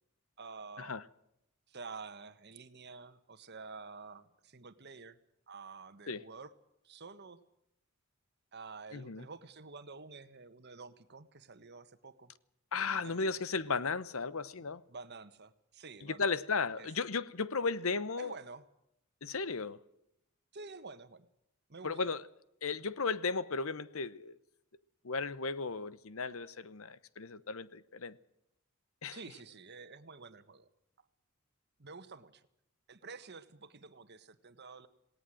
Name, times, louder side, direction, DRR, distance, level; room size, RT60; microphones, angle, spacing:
voice 1, 0.4-0.9 1.7-5.2 5.5-6.5 6.8-7.4 8.5-12.3 12.7-13.4 14.9-16.3 16.8-16.9 18.2-18.7 20.5-21.3 21.7-22.0 29.1-30.7 31.8-32.5 32.9-34.9, right 4 dB, 50° right, 1.4 m, -49 dB
voice 2, 8.9-9.2 12.7-14.8 16.0-18.3 19.2-19.8 21.8-22.2 22.6-24.4 25.0-28.2 29.0-29.2, left 4 dB, 70° left, 0.9 m, -35 dB
18.5 x 18.5 x 7.8 m
head